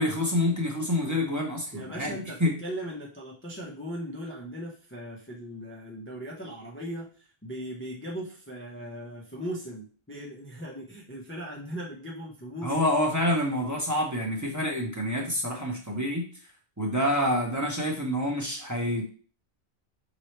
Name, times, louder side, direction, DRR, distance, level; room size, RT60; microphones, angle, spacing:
voice 1, 0.0-2.5 12.6-16.2 16.8-19.1, left 1 dB, 20° right, -2 dB, 0.9 m, -27 dB
voice 2, 1.7-12.8, equal, 15° left, -3 dB, 0.7 m, -38 dB
5.5 x 3.0 x 3.2 m, 0.41 s
omnidirectional pair, 1.0 m